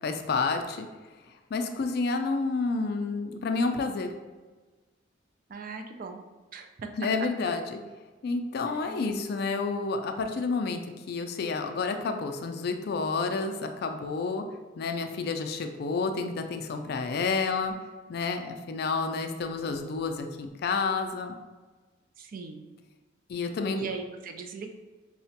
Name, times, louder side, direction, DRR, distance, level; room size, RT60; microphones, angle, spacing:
voice 1, 0.0-0.9 1.5-4.1 7.0-7.8 8.2-10.8 11.1-14.4 14.8-17.7 18.1-21.4 23.3-23.8, left 4 dB, 55° left, 6 dB, 0.3 m, -29 dB
voice 2, 5.5-6.2 6.5-6.9 8.7-9.3 22.2-22.7 23.7-24.7, right 5 dB, 45° right, 6 dB, 0.3 m, -40 dB
4.7 x 2.1 x 2.7 m, 1.3 s
head